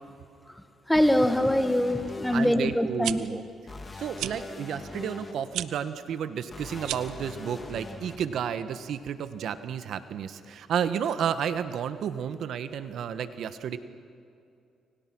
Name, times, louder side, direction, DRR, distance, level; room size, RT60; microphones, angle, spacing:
sound 1, 0.9-2.5 3.7-5.3 6.5-8.2, left 2 dB, 25° left, 3.3 m, -41 dB
voice 1, 0.9-3.2, left 1 dB, 5° left, 9 dB, 1.8 m, -23 dB
voice 2, 2.3-3.4 3.9-13.8, right 8 dB, 70° right, 11 dB, 1.4 m, -32 dB
sound 2, 2.8-3.1 4.1-4.3 5.5-5.7 6.8-7.2, right 13 dB, 90° right, 0.9 m, -32 dB
30.0 x 24.5 x 6.2 m, 2.5 s
cardioid pair, 90°, 0 cm